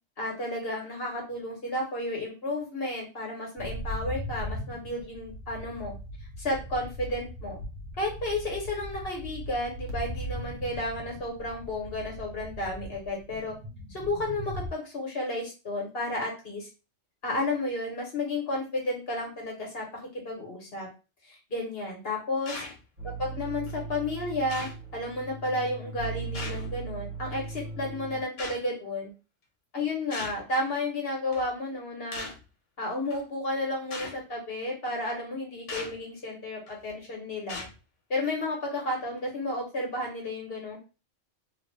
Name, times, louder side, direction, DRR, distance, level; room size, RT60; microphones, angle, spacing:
voice 1, 0.2-5.9 6.4-7.6 8.0-13.5 13.9-16.7 17.2-19.9 20.1-20.9 21.2-22.6 23.2-29.1 29.7-32.3 32.8-37.6 38.1-40.8, left 1 dB, 55° left, -1 dB, 1.5 m, -32 dB
sound 1, 3.6-14.7, equal, 80° right, 1.2 m, -39 dB
sound 2, 22.5-22.8 23.7-23.8 24.5-24.8 26.3-26.8 28.4-28.6 30.1-30.4 31.3-31.5 32.1-32.4 33.1-33.2 33.9-34.2 35.7-36.0 36.7-36.9 37.5-37.8, left 3 dB, 85° left, 1.2 m, -38 dB
sound 3, 23.0-28.2, right 4 dB, 40° right, 1.2 m, -38 dB
3.0 x 2.6 x 3.3 m, 0.31 s
omnidirectional pair, 1.2 m